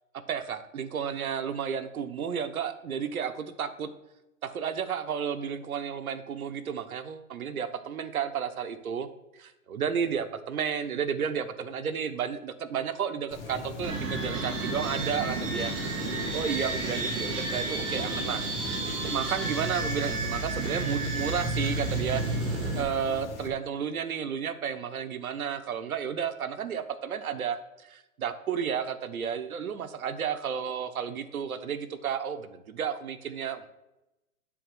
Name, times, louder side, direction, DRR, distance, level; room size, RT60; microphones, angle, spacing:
voice 1, 0.3-3.9 4.4-9.1 9.3-22.4 22.7-33.7, right 7 dB, 85° right, 10 dB, 1.1 m, -32 dB
sound 1, 13.3-23.5, left 3 dB, 55° left, 1.5 m, -40 dB
sound 2, 13.8-22.8, right 3 dB, 10° right, 0.8 m, -31 dB
7.6 x 5.9 x 6.4 m, 0.96 s
hypercardioid pair, 165°, 41 cm